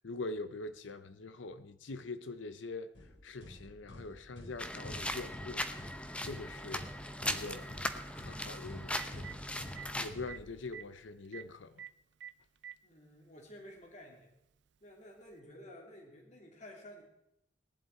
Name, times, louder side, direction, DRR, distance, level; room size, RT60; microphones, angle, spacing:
voice 1, 0.0-2.9 3.2-5.7 5.9-6.9 7.3-7.8 8.1-9.3 9.9-11.7, left 3 dB, 85° left, 0.7 m, -43 dB
sound 1, 2.9-10.9, equal, 65° left, 4.4 m, -50 dB
sound 2, 4.6-10.1, left 1 dB, 5° left, 0.8 m, -39 dB
Telephone, 6.2-6.3 8.4-8.5 8.8-9.3 9.8-9.9 10.3-10.4 10.7-10.8 11.3-11.4 11.8-11.9 12.2-12.8 13.8-13.9 15.3-15.4, right 9 dB, 65° right, 0.5 m, -46 dB
voice 2, 12.8-14.3 14.8-17.0, left 1 dB, 40° left, 2.9 m, -52 dB
19.0 x 11.0 x 4.4 m
head